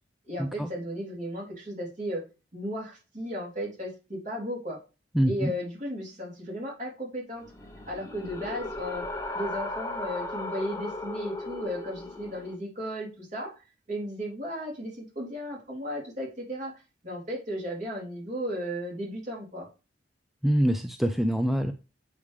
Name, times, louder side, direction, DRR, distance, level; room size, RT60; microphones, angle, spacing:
voice 1, 0.2-2.2 2.5-4.8 5.3-7.4 7.8-9.1 9.3-13.5 13.9-16.7 17.0-19.7, equal, 45° right, -3 dB, 3.4 m, -35 dB
voice 2, 5.2-5.5 20.4-21.7, equal, ahead, 6 dB, 0.4 m, -24 dB
sound 1, 7.4-12.6, left 2 dB, 15° left, 0.9 m, -36 dB
8.4 x 5.2 x 3.3 m, 0.31 s
head